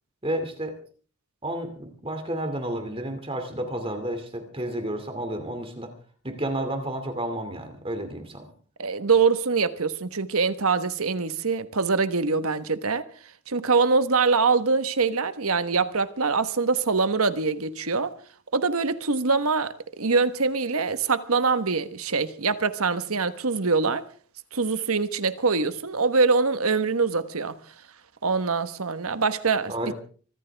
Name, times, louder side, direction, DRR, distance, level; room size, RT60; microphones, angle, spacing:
voice 1, 0.2-0.8 1.4-5.9 6.2-8.4 29.7-29.9, right 1 dB, 25° right, 2.5 m, -31 dB
voice 2, 8.8-13.0 13.5-18.1 18.5-24.0 24.5-27.5 28.2-29.9, right 4 dB, 85° right, 1.3 m, -24 dB
25.0 x 14.0 x 3.5 m
head